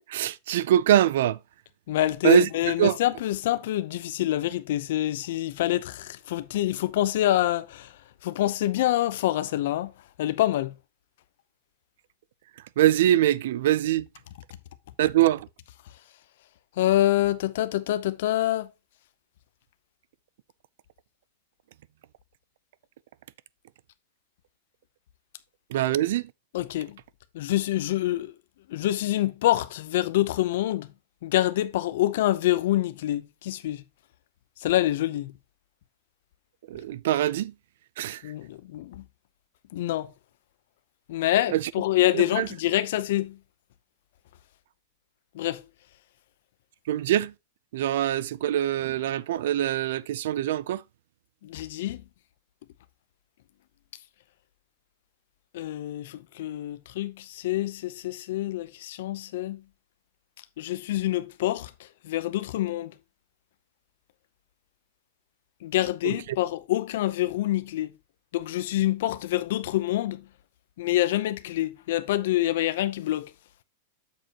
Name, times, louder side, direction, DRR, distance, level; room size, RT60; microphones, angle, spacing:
voice 1, 0.1-1.4 2.2-2.5 2.8-3.0 12.8-14.1 15.0-15.5 25.7-26.3 36.7-37.5 38.0-38.2 41.5-41.7 42.1-42.5 46.9-47.3 47.7-50.8 66.0-66.2, right 12 dB, 55° right, 0.4 m, -23 dB
voice 2, 1.9-7.9 8.2-9.9 10.2-10.7 16.8-18.7 26.5-27.0 27.3-28.3 28.7-30.9 31.2-33.8 34.6-35.3 38.2-39.0 39.7-40.1 41.1-43.4 45.3-45.6 51.4-52.0 55.5-59.6 60.6-61.7 62.0-62.9 65.6-67.9 68.3-70.2 70.8-73.3, left 14 dB, 50° left, 0.6 m, -26 dB
7.6 x 6.7 x 2.9 m
supercardioid pair, 180°, 0 cm